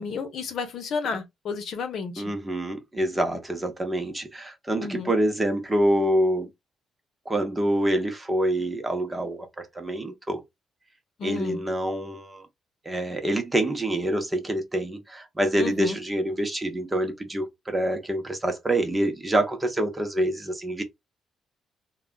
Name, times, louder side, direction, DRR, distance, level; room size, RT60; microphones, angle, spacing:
voice 1, 0.0-2.2 4.8-5.1 11.2-11.6 15.6-16.0, left 5 dB, 65° left, 0.8 m, -32 dB
voice 2, 2.2-6.5 7.3-10.4 11.2-12.4 12.8-20.8, right 1 dB, 20° right, 0.9 m, -26 dB
2.3 x 2.1 x 3.8 m
cardioid pair, 90°, 0 cm